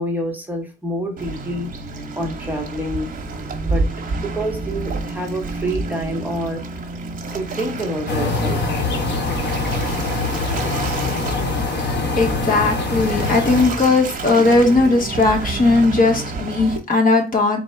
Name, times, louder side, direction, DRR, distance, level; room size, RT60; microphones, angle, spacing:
voice 1, 0.0-1.7 2.1-3.1 3.7-3.9 4.2-6.8 7.3-8.6, right 1 dB, 10° right, 1.0 m, -27 dB
Waves surf, 1.2-16.8, right 3 dB, 45° right, 1.0 m, -29 dB
sound 1, 8.1-13.7, left 3 dB, 60° left, 1.0 m, -23 dB
voice 2, 12.2-17.6, left 3 dB, 45° left, 1.4 m, -17 dB
4.0 x 2.3 x 4.3 m
cardioid pair, 90°, 20 cm